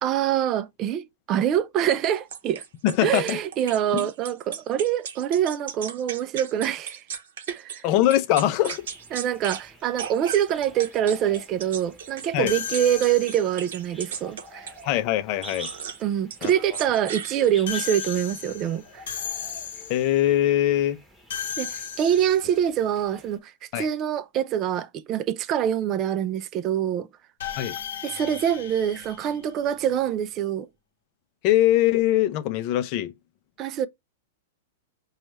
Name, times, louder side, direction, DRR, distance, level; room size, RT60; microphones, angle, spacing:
voice 1, 0.0-2.6 3.0-7.0 7.5-7.9 9.1-14.7 16.0-19.0 21.6-27.1 28.0-30.7 33.6-33.9, right 10 dB, 35° right, 0.4 m, -25 dB
sound 1, 2.3-7.8 8.1-9.6 10.0-14.8 15.4-16.0 16.3-17.8, right 7 dB, 70° right, 0.7 m, -37 dB
voice 2, 2.8-3.4 3.9-4.1 7.8-8.9 12.3-12.5 14.8-15.7 16.4-16.5 19.9-21.0 23.7-23.9 27.6-27.8 31.4-33.1, left 13 dB, 45° left, 0.5 m, -22 dB
sound 2, 8.7-23.4, equal, 5° right, 0.9 m, -48 dB
sound 3, 12.5-13.7 17.7-20.2 21.3-22.6 27.4-29.9, left 8 dB, 70° left, 0.8 m, -35 dB
5.1 x 2.3 x 3.1 m
hypercardioid pair, 115°, 0 cm